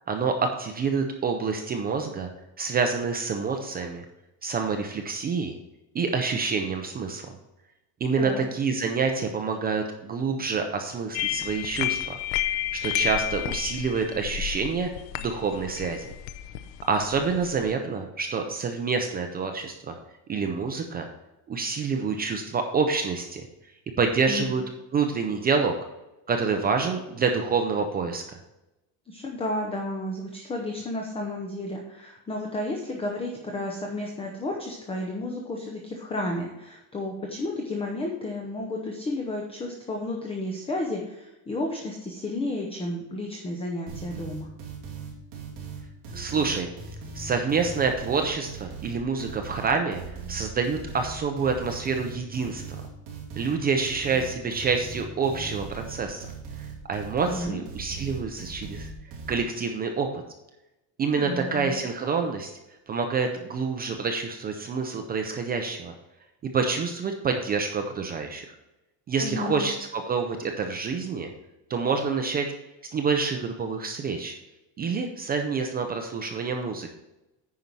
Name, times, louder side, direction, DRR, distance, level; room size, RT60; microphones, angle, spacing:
voice 1, 0.1-2.3 2.6-4.0 4.4-5.6 5.9-7.3 8.0-16.1 16.9-20.0 20.3-21.1 21.5-23.5 24.0-24.6 24.9-25.7 26.3-28.4 46.1-46.7 47.1-50.0 50.3-52.6 53.4-56.3 56.9-58.9 59.3-60.2 61.0-62.5 62.9-65.9 66.4-68.5 69.1-71.3 71.7-72.5 72.9-74.3 74.8-76.9, right 5 dB, 20° right, 4 dB, 0.4 m, -27 dB
sound 1, 11.1-17.7, left 13 dB, 80° left, 0.8 m, -31 dB
voice 2, 29.1-44.5 57.2-57.6 61.1-61.8 69.2-69.7, left 2 dB, 10° left, 1 dB, 0.7 m, -32 dB
sound 2, 43.9-59.4, right 5 dB, 40° right, 2.7 m, -39 dB
9.4 x 5.4 x 4.5 m, 0.94 s
cardioid pair, 175°, 48 cm